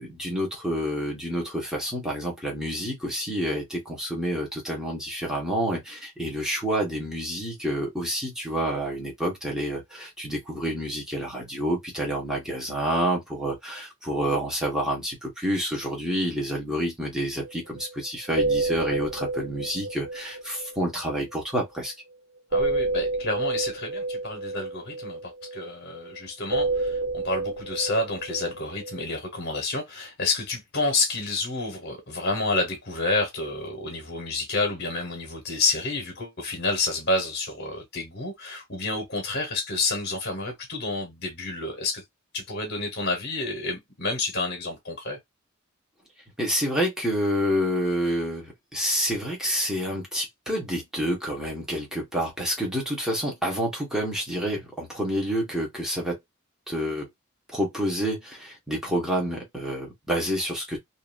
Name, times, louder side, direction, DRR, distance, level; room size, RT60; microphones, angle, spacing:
voice 1, 0.0-21.9 46.4-56.2 56.7-57.1 57.5-60.8, equal, 5° right, 1.2 m, -28 dB
sound 1, 17.4-17.5 17.8-18.0 18.3-21.6 22.5-26.2 26.5-29.0, right 3 dB, 55° right, 0.7 m, -29 dB
voice 2, 22.5-42.0 42.3-45.2, left 3 dB, 55° left, 1.2 m, -29 dB
2.8 x 2.7 x 2.4 m
head